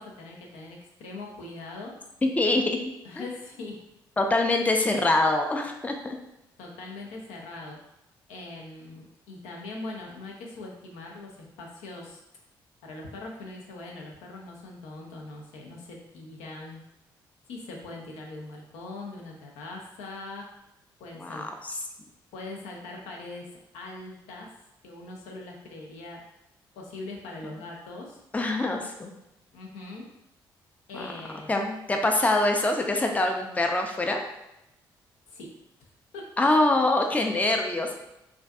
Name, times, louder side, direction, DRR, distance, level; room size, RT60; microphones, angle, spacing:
voice 1, 0.0-2.0 3.0-3.8 6.6-7.8 8.3-12.2 12.8-16.8 17.5-20.5 21.0-21.5 22.3-24.5 24.8-26.2 26.7-28.2 29.5-30.1 30.9-31.6 35.3-35.5 36.1-36.3, left 2 dB, 75° left, -1 dB, 0.5 m, -41 dB
voice 2, 2.2-2.6 3.2-3.3 4.2-6.2 21.2-21.8 28.3-29.1 30.9-31.1 31.5-34.2 36.4-37.9, left 2 dB, 15° left, 3 dB, 0.4 m, -24 dB
2.5 x 2.3 x 2.3 m, 0.90 s
hypercardioid pair, 45°, 11 cm